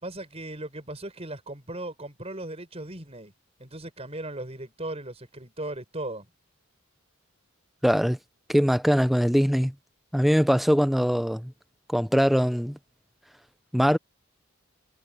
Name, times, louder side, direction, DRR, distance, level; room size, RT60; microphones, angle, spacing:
voice 1, 0.0-3.3 3.6-6.3, right 1 dB, 30° right, 6.0 m, -37 dB
voice 2, 7.8-8.2 8.5-9.7 10.1-11.5 11.9-12.8 13.7-14.0, equal, ahead, 0.5 m, -22 dB
head